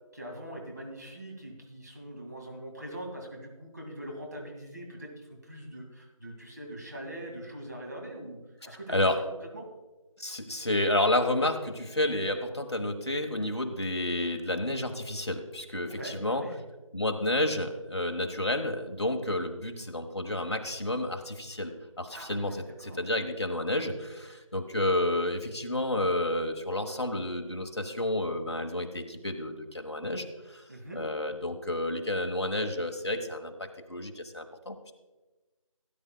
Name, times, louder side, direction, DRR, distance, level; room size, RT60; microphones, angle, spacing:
voice 1, 0.1-8.4 8.7-9.7 15.9-16.6 22.1-23.0 30.7-31.0, right 1 dB, 30° right, 0 dB, 2.0 m, -42 dB
voice 2, 8.9-9.2 10.2-16.4 16.9-30.6 30.9-34.9, left 1 dB, 50° left, 4 dB, 1.3 m, -30 dB
17.5 x 9.4 x 2.3 m, 1.1 s
figure-of-eight pair, 175°, 18 cm